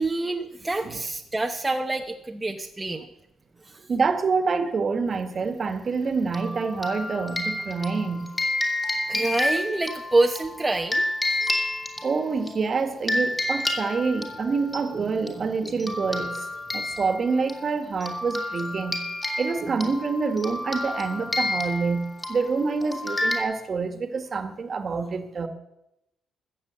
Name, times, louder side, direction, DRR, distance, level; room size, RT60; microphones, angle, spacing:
voice 1, 0.0-3.1 3.6-3.8 9.1-11.0, right 2 dB, 15° right, 3 dB, 1.0 m, -26 dB
voice 2, 3.9-8.3 12.0-16.4 16.7-19.1 19.4-25.5, right 4 dB, 45° right, 8 dB, 1.7 m, -27 dB
sound 1, 6.3-12.5 13.1-14.8 15.3-15.4 15.6-23.4, left 1 dB, 20° left, 2.8 m, -30 dB
14.0 x 7.6 x 8.1 m, 0.85 s
cardioid pair, 90°, 0 cm